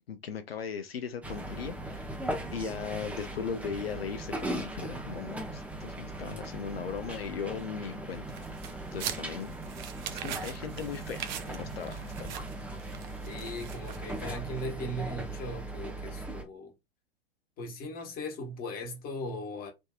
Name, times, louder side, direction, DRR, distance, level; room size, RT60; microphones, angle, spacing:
voice 1, 0.1-2.1 2.5-8.2 8.9-9.6 10.1-12.5, left 6 dB, 80° left, 0.5 m, -38 dB
sound 1, 1.2-16.4, right 1 dB, 5° right, 0.7 m, -39 dB
sound 2, 8.3-14.5, right 9 dB, 50° right, 0.7 m, -42 dB
voice 2, 13.3-16.7 17.6-19.7, left 1 dB, 30° left, 1.2 m, -38 dB
3.6 x 2.6 x 2.3 m
figure-of-eight pair, 95°, 30 cm